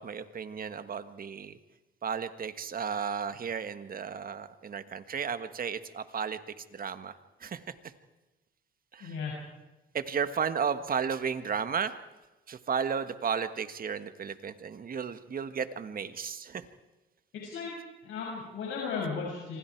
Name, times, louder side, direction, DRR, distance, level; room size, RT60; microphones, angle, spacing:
voice 1, 0.0-1.6 2.0-7.9 8.9-9.2 9.9-11.9 12.5-16.7, right 6 dB, 45° right, 11 dB, 1.6 m, -34 dB
voice 2, 9.0-9.4 17.4-17.7 18.0-19.6, left 5 dB, 75° left, -2 dB, 6.1 m, -35 dB
26.0 x 25.5 x 4.7 m, 1.1 s
cardioid pair, 90°, 20 cm